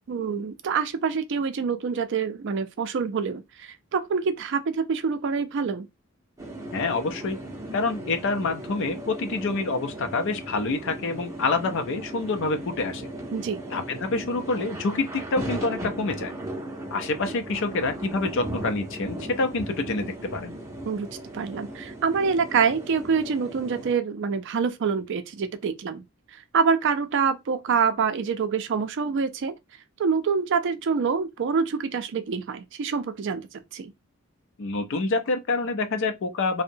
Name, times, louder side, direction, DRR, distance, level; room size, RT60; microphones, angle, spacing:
voice 1, 0.1-5.9 13.3-13.6 20.8-21.1 21.3-26.0 26.3-29.5 30.0-33.9, right 5 dB, 60° right, 0.4 m, -26 dB
sound 1, 6.4-23.9, right 1 dB, 15° right, 0.6 m, -37 dB
voice 2, 6.7-7.4 7.7-13.1 13.7-16.3 16.9-20.6 34.6-36.6, left 3 dB, 65° left, 0.5 m, -27 dB
2.7 x 2.1 x 2.6 m
head